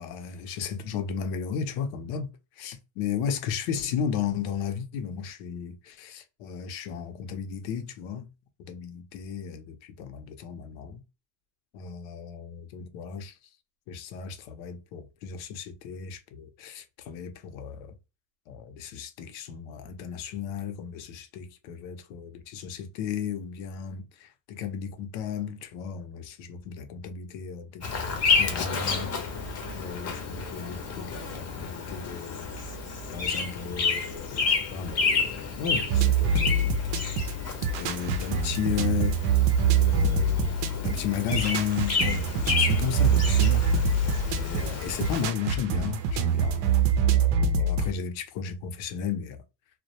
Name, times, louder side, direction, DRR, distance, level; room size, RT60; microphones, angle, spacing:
voice 1, 0.0-8.3 8.7-11.0 11.7-13.4 13.9-17.9 18.5-29.1 29.7-32.5 33.1-36.7 37.8-39.2 39.8-44.0 44.4-46.7 47.1-49.4, left 7 dB, 80° left, 0.7 m, -34 dB
Bird vocalization bird call bird song, 27.8-45.2, left 4 dB, 35° left, 0.6 m, -30 dB
sound 1, 35.9-47.9, right 5 dB, 65° right, 0.6 m, -25 dB
2.2 x 2.1 x 2.7 m
cardioid pair, 130°, 46 cm